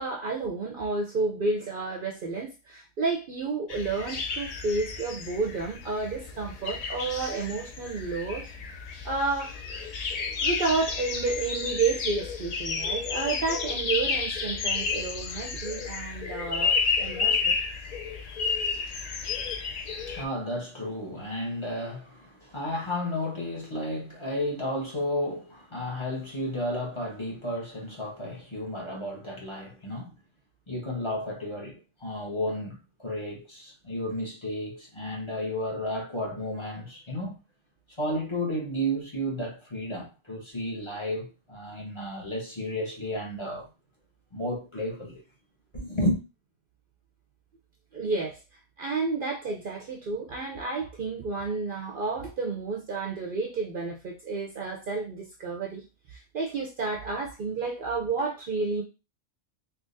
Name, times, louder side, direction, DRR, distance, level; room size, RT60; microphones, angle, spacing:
voice 1, 0.0-8.5 9.0-9.6 10.4-17.6 47.9-48.4 48.8-58.8, right 3 dB, 55° right, 0.6 m, -31 dB
sound 1, 3.7-20.2, left 5 dB, 85° left, 0.3 m, -31 dB
voice 2, 19.1-19.4 19.7-30.1 30.7-37.4 38.0-43.7 44.3-45.2 45.7-46.2, equal, 25° left, 1.0 m, -32 dB
3.7 x 2.8 x 2.6 m
omnidirectional pair, 1.3 m